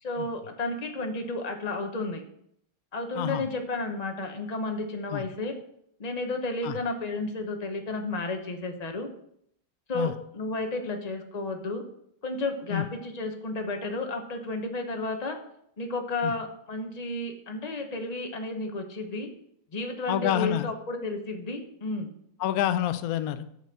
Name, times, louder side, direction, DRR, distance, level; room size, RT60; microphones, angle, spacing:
voice 1, 0.0-2.2 2.9-5.6 6.0-9.1 9.9-11.8 12.2-15.4 15.8-19.3 19.7-22.1, left 2 dB, 30° left, 5 dB, 0.8 m, -32 dB
voice 2, 20.1-20.7 22.4-23.5, left 11 dB, 65° left, 11 dB, 0.9 m, -27 dB
7.0 x 6.2 x 6.6 m, 0.72 s
omnidirectional pair, 2.0 m